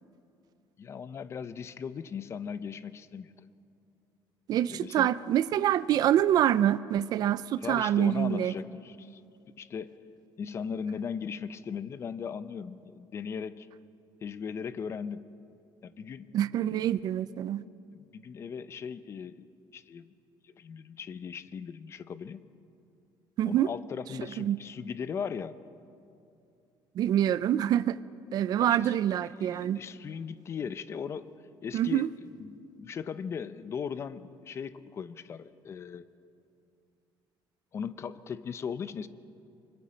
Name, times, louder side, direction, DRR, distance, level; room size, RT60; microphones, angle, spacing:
voice 1, 0.8-3.3 4.7-5.1 7.6-9.2 9.5-9.9 10.4-13.7 14.2-15.3 15.8-16.8 17.9-19.5 19.7-20.1 20.4-22.5 23.5-25.5 28.6-28.9 29.4-31.3 31.6-32.1 32.4-36.1 37.7-39.1, left 6 dB, 30° left, 14 dB, 0.7 m, -38 dB
voice 2, 4.5-8.5 16.3-17.6 23.4-23.7 24.2-24.6 26.9-28.0 28.3-29.8 31.7-32.1, right 11 dB, 50° right, 17 dB, 0.5 m, -26 dB
24.0 x 23.5 x 5.2 m, 2.6 s
cardioid pair, 160°, 9 cm